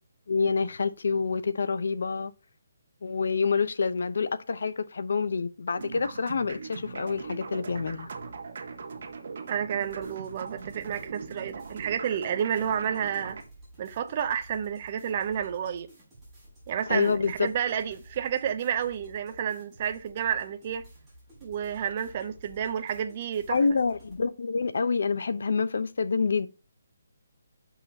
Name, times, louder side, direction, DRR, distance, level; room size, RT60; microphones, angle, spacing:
voice 1, 0.3-2.3 3.0-8.1 16.9-17.5 23.5-26.5, left 5 dB, 65° left, 0.7 m, -27 dB
sound 1, 5.7-13.4, right 4 dB, 50° right, 1.3 m, -40 dB
voice 2, 9.5-13.4 13.8-15.9 16.7-20.9 21.4-23.6, right 8 dB, 30° right, 0.6 m, -30 dB
sound 2, 9.8-24.2, right 1 dB, 5° right, 5.0 m, -53 dB
7.0 x 5.6 x 4.1 m
hypercardioid pair, 175°, 0 cm